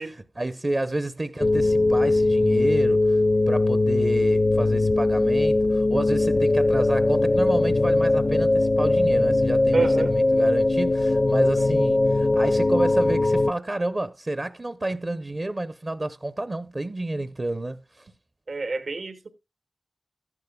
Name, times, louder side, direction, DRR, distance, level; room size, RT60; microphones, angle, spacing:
voice 1, 0.0-18.1, right 2 dB, 35° right, 0.6 m, -30 dB
sound 1, 1.4-13.5, left 2 dB, 35° left, 0.4 m, -20 dB
voice 2, 9.7-10.1 18.5-19.3, right 3 dB, 80° right, 1.4 m, -26 dB
14.0 x 11.0 x 2.2 m
wide cardioid pair, 75°, 0 cm